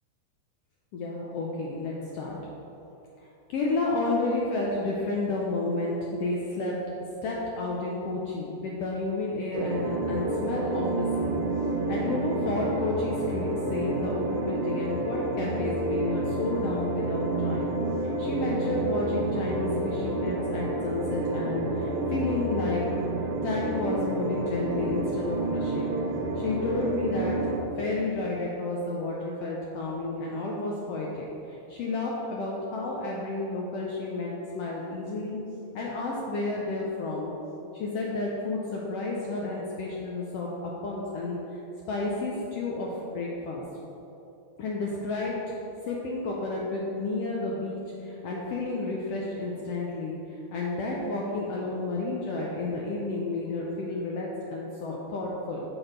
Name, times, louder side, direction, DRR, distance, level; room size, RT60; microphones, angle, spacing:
voice 1, 0.9-2.4 3.5-7.0 7.2-11.4 11.9-17.7 18.2-23.0 23.4-26.0 26.4-27.4 27.8-35.4 35.7-37.3 37.7-41.6 41.9-43.6 44.6-45.5 45.9-55.6, left 2 dB, 75° left, -3 dB, 1.4 m, -31 dB
sound 1, 9.5-27.6, right 2 dB, 80° right, 2.1 m, -29 dB
6.1 x 6.1 x 5.1 m, 3.0 s
omnidirectional pair, 3.6 m